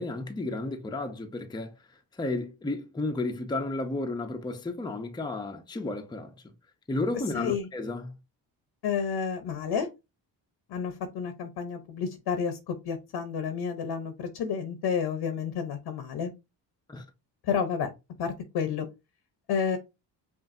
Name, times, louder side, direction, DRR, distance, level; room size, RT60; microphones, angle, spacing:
voice 1, 0.0-1.7 2.2-6.3 6.9-8.1 16.9-17.0, left 2 dB, 10° left, 0.6 m, -32 dB
voice 2, 7.3-7.7 8.8-9.9 10.7-16.3 17.4-17.9 18.2-18.9 19.5-19.8, left 6 dB, 70° left, 0.9 m, -30 dB
5.4 x 2.6 x 2.6 m
cardioid pair, 90°, 42 cm